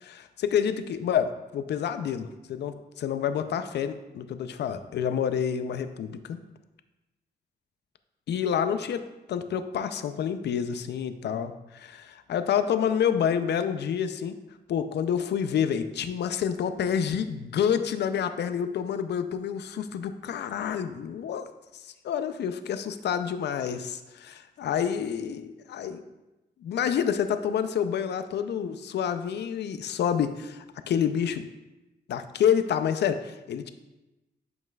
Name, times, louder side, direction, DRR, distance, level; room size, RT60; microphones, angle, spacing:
voice 1, 0.0-6.4 8.3-14.3 14.7-21.4 21.7-26.0 26.6-31.4 32.1-33.7, left 8 dB, 75° left, 10 dB, 0.5 m, -28 dB
11.0 x 5.3 x 2.3 m, 1.0 s
cardioid pair, 105°, 18 cm